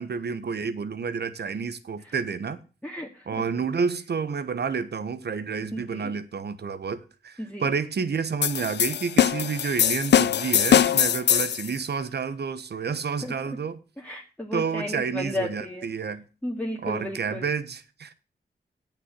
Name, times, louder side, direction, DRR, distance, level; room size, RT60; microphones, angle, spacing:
voice 1, 0.0-2.6 3.3-13.8 14.5-16.2 16.8-18.1, right 5 dB, 75° right, 1.1 m, -30 dB
voice 2, 2.8-3.3 5.7-6.1 7.4-7.7 13.2-13.6 14.0-15.9 16.4-17.5, left 1 dB, 10° left, 2.1 m, -34 dB
sound 1, 8.4-11.7, left 9 dB, 90° left, 0.6 m, -21 dB
8.6 x 7.0 x 8.2 m
cardioid pair, 55°, 17 cm